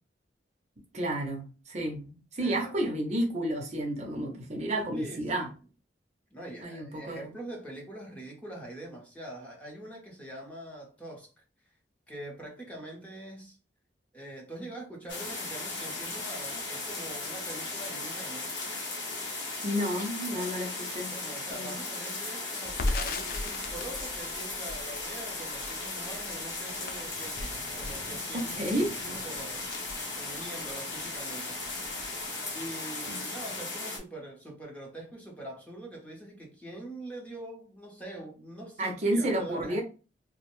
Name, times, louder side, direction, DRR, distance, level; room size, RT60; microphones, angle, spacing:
voice 1, 0.9-5.5 6.6-7.3 19.6-21.1 21.5-21.6 28.3-28.9 33.1-33.2 38.8-39.8, right 1 dB, 40° right, 0.6 m, -31 dB
voice 2, 2.4-3.0 4.9-5.5 6.3-11.3 12.1-13.6 14.1-18.5 20.3-20.5 21.1-29.7 30.2-31.6 32.5-39.8, right 1 dB, 10° left, 0.7 m, -44 dB
sound 1, 15.1-34.0, left 3 dB, 80° left, 0.9 m, -37 dB
Crackle, 22.7-30.7 31.1-31.2 31.5-32.2, left 2 dB, 55° left, 0.4 m, -38 dB
2.5 x 2.1 x 3.0 m
head